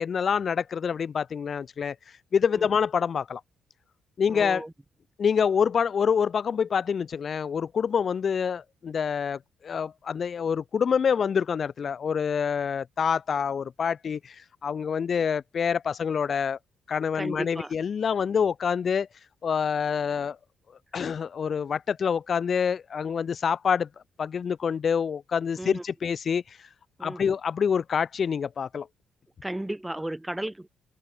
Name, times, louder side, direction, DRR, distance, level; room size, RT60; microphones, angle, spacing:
voice 1, 0.0-1.9 2.3-3.4 4.2-4.6 5.2-14.3 14.6-16.6 16.9-19.1 19.4-20.4 20.9-23.9 24.2-26.4 27.0-28.9, left 7 dB, 50° left, 1.2 m, -26 dB
voice 2, 4.3-4.7 17.1-17.7 25.6-25.8 27.0-27.2 29.4-30.7, right 1 dB, 10° right, 1.9 m, -34 dB
open air
cardioid pair, 90°, 0 cm